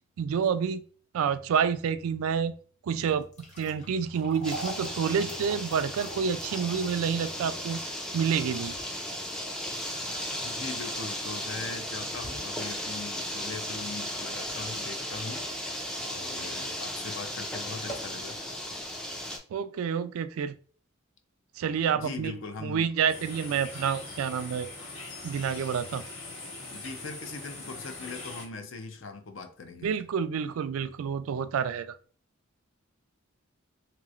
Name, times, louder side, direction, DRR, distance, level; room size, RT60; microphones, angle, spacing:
voice 1, 0.2-0.8 1.1-2.5 2.8-3.3 3.6-7.8 8.1-8.8 19.5-20.6 21.6-24.7 25.2-26.0 29.8-32.0, right 7 dB, 80° right, 0.3 m, -28 dB
sound 1, 3.2-15.4 15.8-15.9 16.7-16.8 17.2-17.3 17.7-18.2, right 1 dB, 35° left, 0.9 m, -46 dB
sound 2, 4.4-19.4, equal, 5° left, 0.3 m, -36 dB
voice 2, 10.4-15.5 16.1-18.4 22.0-22.9 26.7-29.9, left 4 dB, 60° left, 0.5 m, -40 dB
sound 3, 23.1-28.5, left 2 dB, 75° left, 1.4 m, -42 dB
3.1 x 2.9 x 2.4 m
head